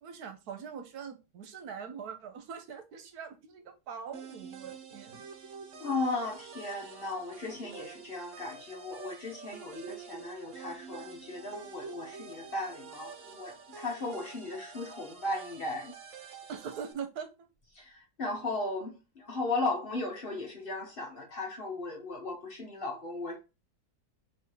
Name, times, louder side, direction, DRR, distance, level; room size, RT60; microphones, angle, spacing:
voice 1, 0.0-5.3 16.5-17.5, right 7 dB, 75° right, 1.3 m, -42 dB
sound 1, 4.1-16.9, right 6 dB, 55° right, 1.1 m, -47 dB
voice 2, 5.8-15.9 17.8-17.9 18.2-23.4, left 2 dB, 40° left, 1.1 m, -36 dB
3.6 x 3.1 x 4.5 m
omnidirectional pair, 1.7 m